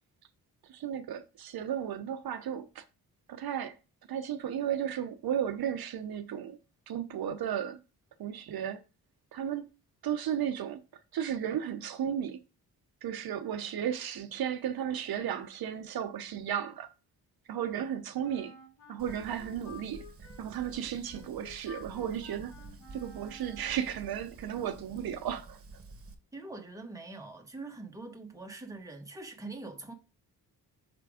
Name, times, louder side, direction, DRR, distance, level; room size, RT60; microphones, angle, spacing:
voice 1, 0.7-2.8 3.3-3.8 4.1-6.6 6.9-7.8 8.2-8.8 9.3-9.7 10.0-10.8 11.1-12.4 13.0-16.9 17.5-18.5 18.9-20.0 20.4-22.5 22.9-25.6, right 9 dB, 70° right, 0.7 m, -34 dB
Wind instrument woodwind instrument, 18.2-24.2, left 2 dB, 85° left, 3.7 m, -53 dB
Fire, 19.0-26.1, right 3 dB, 35° right, 1.3 m, -50 dB
voice 2, 26.3-29.9, right 2 dB, 10° right, 1.2 m, -43 dB
6.0 x 3.3 x 4.8 m
cardioid pair, 85°, 38 cm